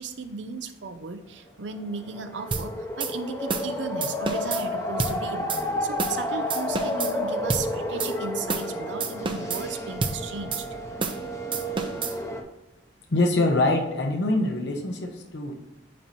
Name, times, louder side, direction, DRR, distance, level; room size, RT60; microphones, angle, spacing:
voice 1, 0.0-10.7, right 4 dB, 70° right, 9 dB, 0.7 m, -36 dB
sound 1, 1.8-12.4, left 1 dB, 15° left, 0.8 m, -31 dB
sound 2, 2.5-2.7 3.0-3.1 3.5-3.7 4.0-4.6 5.0-5.2 5.5-5.6 6.0-6.2 6.5-7.1 7.5-7.7 8.0-8.1 8.5-8.7 9.0-9.6 10.0-10.2 10.5-10.6 11.0-11.2 11.5-12.1, right 4 dB, 25° right, 0.6 m, -29 dB
voice 2, 13.1-15.5, left 2 dB, 65° left, 2 dB, 1.0 m, -24 dB
9.2 x 3.1 x 4.1 m, 1.0 s
head